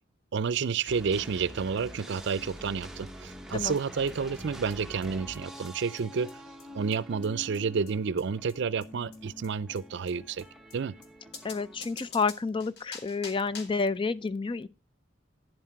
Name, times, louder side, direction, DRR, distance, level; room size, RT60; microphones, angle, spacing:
voice 1, 0.3-6.3 6.7-10.4 10.7-10.9, right 5 dB, 65° right, 0.4 m, -30 dB
sound 1, 0.9-12.1, equal, ahead, 0.9 m, -46 dB
sound 2, 3.8-3.9 4.1-4.2 4.4-4.5 4.7-4.8 5.0-5.1 5.3-5.4 5.6-5.7 6.0-6.1 6.3-6.4 6.6-6.7 6.9-7.0 7.2-7.3 7.5-7.6 7.9-8.0 8.2-8.3 8.5-8.6 8.8-8.9 9.1-9.2 9.4-9.5 9.8-9.9 10.1-10.2 10.4-10.5 10.7-10.8 11.0-11.1 11.3-13.9, left 5 dB, 60° left, 1.5 m, -46 dB
voice 2, 11.4-14.7, left 4 dB, 25° left, 0.4 m, -30 dB
10.0 x 7.5 x 4.4 m
head